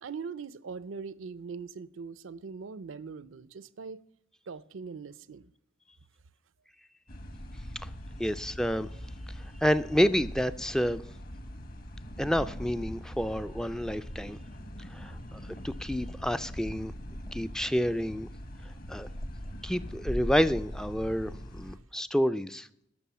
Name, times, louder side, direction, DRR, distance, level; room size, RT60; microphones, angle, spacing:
voice 1, 0.0-4.0 4.5-5.5 21.7-21.8, right 5 dB, 80° right, 0.5 m, -41 dB
sound 1, 7.1-21.8, equal, 50° left, 1.3 m, -41 dB
voice 2, 8.2-8.9 9.6-11.0 12.2-14.4 14.9-15.4 15.6-16.9 17.3-18.3 18.9-19.1 19.6-22.7, equal, 5° left, 0.3 m, -29 dB
12.5 x 6.0 x 7.2 m
head